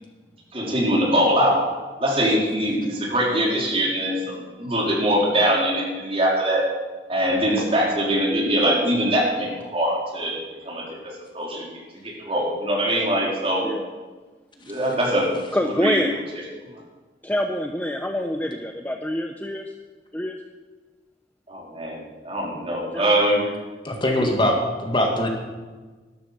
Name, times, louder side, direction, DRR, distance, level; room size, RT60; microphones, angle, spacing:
voice 1, 0.5-1.6 2.0-6.6 7.1-10.4 10.6-11.7 12.0-13.6 14.6-15.3 15.8-16.0 21.5-23.5, equal, 35° right, -3 dB, 4.0 m, -22 dB
voice 2, 15.5-16.2 17.2-19.7 20.1-20.4 22.9-23.1 24.2-24.4, left 1 dB, 10° left, 4 dB, 0.7 m, -26 dB
voice 3, 23.8-25.3, left 1 dB, 25° left, 2 dB, 1.9 m, -22 dB
12.5 x 12.5 x 6.7 m, 1.3 s
head